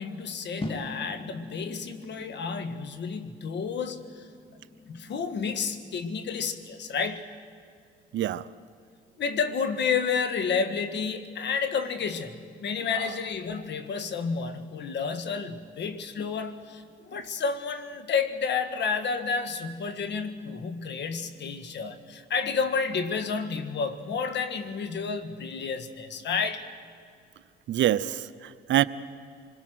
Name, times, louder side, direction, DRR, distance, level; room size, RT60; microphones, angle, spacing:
voice 1, 0.0-4.3 4.9-7.2 9.2-26.6, left 5 dB, 60° left, 9 dB, 1.7 m, -30 dB
sound 1, 0.6-6.8, left 2 dB, 30° left, 2.2 m, -43 dB
voice 2, 8.1-8.5 27.7-28.8, right 12 dB, 70° right, 15 dB, 0.7 m, -25 dB
26.0 x 21.5 x 6.3 m, 2.1 s
cardioid pair, 90°, 20 cm